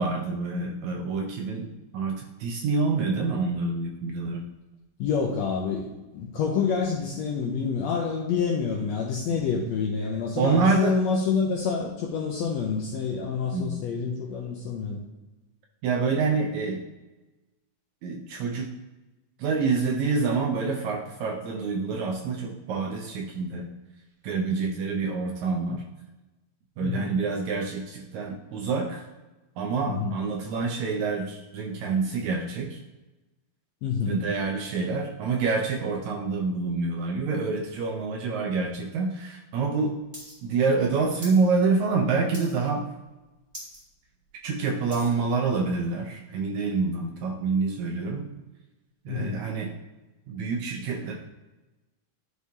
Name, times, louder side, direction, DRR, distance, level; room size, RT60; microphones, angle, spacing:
voice 1, 0.0-4.4 9.3-9.4 10.4-11.0 13.5-13.8 15.8-16.8 18.0-18.7 19.4-23.7 24.2-25.8 26.8-29.1 29.6-32.8 34.0-39.9 40.4-42.8 44.4-48.3 49.0-49.7 50.3-51.1, right 4 dB, 80° right, 2 dB, 1.7 m, -27 dB
voice 2, 5.0-15.0 26.8-27.1 29.9-30.2 33.8-34.2 49.1-49.4, left 5 dB, 75° left, -1 dB, 1.6 m, -27 dB
sound 1, 40.1-40.3 40.6-41.4 41.8-42.0 42.3-42.8 43.1-43.2 43.5-43.8 44.2-45.2 45.8-45.9, equal, 15° right, 1.8 m, -42 dB
11.5 x 4.7 x 2.7 m, 1.1 s
omnidirectional pair, 3.8 m